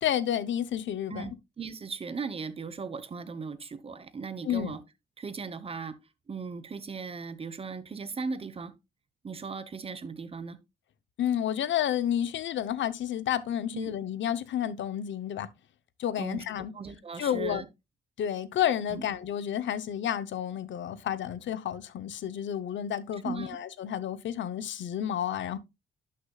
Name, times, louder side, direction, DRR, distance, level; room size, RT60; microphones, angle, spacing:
voice 1, 0.0-1.3 4.4-4.8 11.2-15.5 16.0-16.7 17.2-17.6 18.2-25.6, left 10 dB, 70° left, 0.8 m, -30 dB
voice 2, 1.1-4.8 5.2-6.0 6.3-8.7 9.2-10.6 13.7-13.9 16.2-16.4 16.7-17.7 18.9-19.1 23.2-23.6, right 5 dB, 30° right, 0.9 m, -37 dB
11.5 x 6.5 x 2.3 m
cardioid pair, 115°, 20 cm